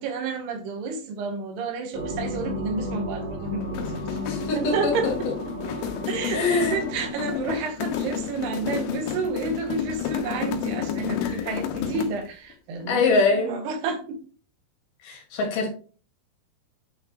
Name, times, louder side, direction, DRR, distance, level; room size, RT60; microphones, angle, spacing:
voice 1, 0.0-4.2 4.5-5.3 6.1-14.2, right 4 dB, 75° right, 3.0 m, -30 dB
sound 1, 1.9-7.1, left 1 dB, 35° left, 3.9 m, -34 dB
sound 2, 3.6-12.3, left 9 dB, 90° left, 3.1 m, -31 dB
voice 2, 4.3-5.1 6.3-6.9 11.2-11.3 12.9-13.5 15.0-15.7, left 3 dB, 65° left, 3.3 m, -23 dB
8.7 x 5.9 x 2.9 m
omnidirectional pair, 4.9 m